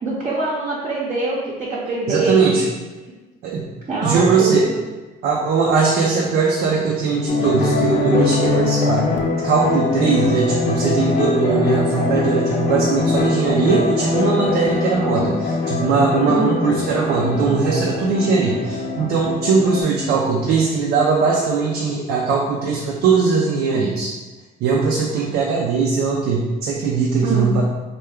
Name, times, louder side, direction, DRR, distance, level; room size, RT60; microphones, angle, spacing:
voice 1, 0.0-2.7 3.9-4.7 16.3-16.5 27.2-27.5, right 2 dB, 40° right, -5 dB, 0.7 m, -24 dB
voice 2, 2.1-2.7 3.4-3.7 4.0-4.7 5.2-9.1 9.4-24.1 24.6-27.6, right 4 dB, 80° right, -2 dB, 0.5 m, -19 dB
sound 1, 7.3-19.8, left 3 dB, 50° left, 0.6 m, -22 dB
3.2 x 2.2 x 3.5 m, 1.2 s
cardioid pair, 110°, 17 cm